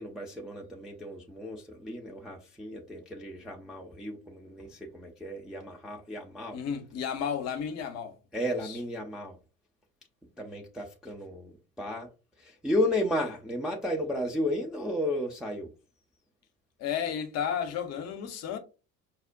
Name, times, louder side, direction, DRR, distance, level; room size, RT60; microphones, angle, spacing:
voice 1, 0.0-6.6 8.3-9.4 10.4-12.1 12.4-15.7, left 1 dB, ahead, 0.4 m, -33 dB
voice 2, 6.5-8.2 8.5-8.8 16.8-18.6, left 8 dB, 35° left, 0.7 m, -33 dB
5.2 x 2.0 x 2.5 m
figure-of-eight pair, 65°, 46 cm